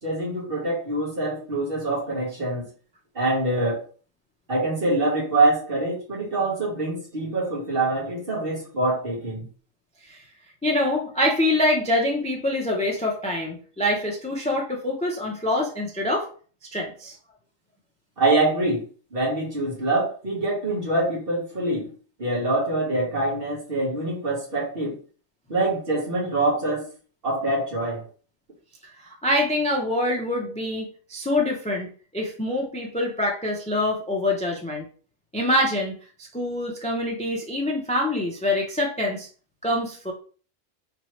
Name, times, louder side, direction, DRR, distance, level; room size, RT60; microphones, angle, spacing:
voice 1, 0.0-2.7 3.1-3.8 4.5-9.5 18.2-18.8 19.1-21.9 22.2-25.0 25.5-26.9 27.2-28.0, right 2 dB, 45° right, -4 dB, 1.7 m, -25 dB
voice 2, 10.6-16.3 16.7-17.1 29.0-34.8 35.3-36.0 36.3-39.3 39.6-40.1, left 1 dB, 10° left, 0 dB, 0.4 m, -25 dB
3.6 x 2.9 x 3.1 m, 0.40 s
omnidirectional pair, 1.3 m